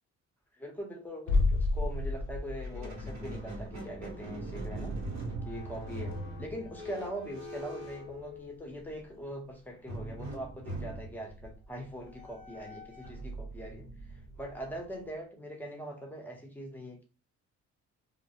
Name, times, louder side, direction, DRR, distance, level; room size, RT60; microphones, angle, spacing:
voice 1, 0.5-4.9 5.4-13.8 14.4-17.0, right 1 dB, 5° left, 2 dB, 0.7 m, -42 dB
sound 1, 1.3-7.0 7.3-7.4, left 3 dB, 85° left, 0.5 m, -33 dB
Squeak, 2.6-8.9 9.9-15.0, right 1 dB, 65° right, 0.9 m, -42 dB
2.1 x 2.0 x 2.8 m, 0.36 s
cardioid pair, 90°, 30 cm